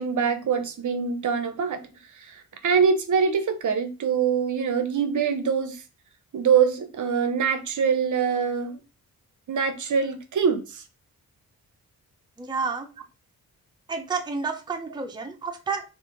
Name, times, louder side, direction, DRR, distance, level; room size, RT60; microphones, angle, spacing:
voice 1, 0.0-1.8 2.2-5.8 6.3-8.8 9.5-10.8, right 6 dB, 55° right, 8 dB, 0.6 m, -24 dB
voice 2, 12.4-12.9 13.9-15.8, right 4 dB, 10° right, 4 dB, 0.5 m, -30 dB
3.0 x 2.5 x 3.7 m, 0.31 s
cardioid pair, 90°, 36 cm